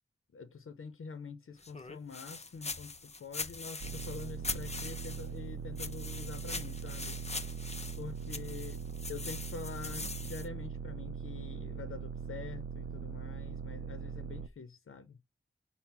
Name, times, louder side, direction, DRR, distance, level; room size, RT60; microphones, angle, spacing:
voice 1, 0.3-7.2 8.0-8.8 9.1-15.2, left 5 dB, 85° left, 0.6 m, -46 dB
sound 1, 1.6-5.4 5.8-10.5, left 3 dB, 30° left, 0.5 m, -42 dB
sound 2, 3.8-14.5, right 6 dB, 80° right, 0.4 m, -41 dB
5.6 x 2.0 x 4.5 m
wide cardioid pair, 45°, 21 cm